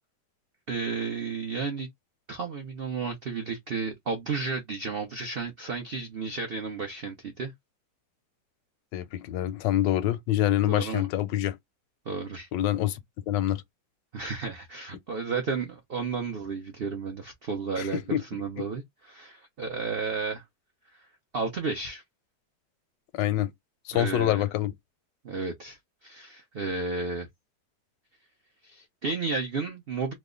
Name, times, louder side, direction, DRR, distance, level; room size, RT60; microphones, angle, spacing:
voice 1, 0.7-1.9 2.3-7.5 10.7-11.1 12.1-12.5 14.1-20.4 21.3-22.0 23.9-24.4 25.2-27.3 28.6-30.1, right 4 dB, 75° right, 0.5 m, -32 dB
voice 2, 8.9-11.6 12.5-13.0 13.3-13.6 17.8-18.2 23.1-23.5 23.9-24.7, left 13 dB, 85° left, 1.2 m, -26 dB
3.1 x 2.0 x 3.6 m
omnidirectional pair, 1.9 m